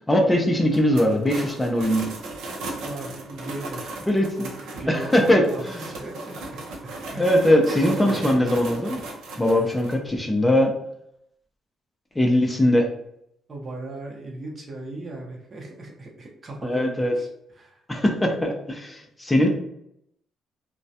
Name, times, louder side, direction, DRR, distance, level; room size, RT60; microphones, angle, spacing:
voice 1, 0.1-2.1 4.1-4.3 4.9-5.9 7.2-9.0 9.4-10.7 12.2-12.9 16.6-17.1 17.9-19.5, left 1 dB, 15° left, 2 dB, 0.4 m, -21 dB
sound 1, 0.7-9.9, right 2 dB, 85° right, 0.5 m, -36 dB
voice 2, 2.8-3.9 4.4-6.4 7.1-8.4 13.5-17.3 17.6-17.8, right 2 dB, 40° right, 0 dB, 0.7 m, -37 dB
2.2 x 2.1 x 2.7 m, 0.75 s
cardioid pair, 90°, 0 cm